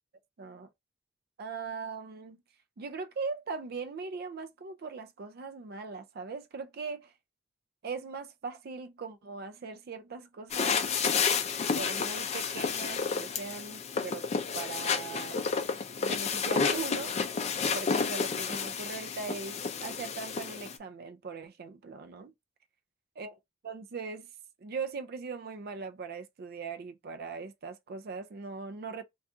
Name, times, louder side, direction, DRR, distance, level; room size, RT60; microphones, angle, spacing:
voice 1, 0.4-0.7 1.4-2.4 2.8-7.1 7.8-10.8 11.7-14.2 14.5-15.4 16.0-17.1 17.7-22.3 23.2-23.4 23.6-24.3 24.6-29.0, right 4 dB, 55° right, 0.4 m, -40 dB
sound 1, 10.5-20.8, left 5 dB, 35° left, 0.4 m, -31 dB
2.5 x 2.4 x 3.5 m
head